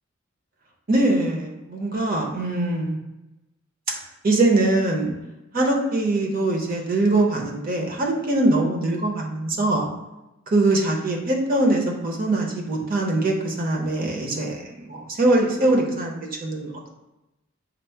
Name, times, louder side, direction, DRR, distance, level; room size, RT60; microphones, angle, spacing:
voice 1, 0.9-3.0 4.2-5.1 5.5-9.9 10.5-16.7, right 2 dB, 45° right, 1 dB, 0.7 m, -22 dB
5.1 x 2.1 x 4.5 m, 0.98 s
head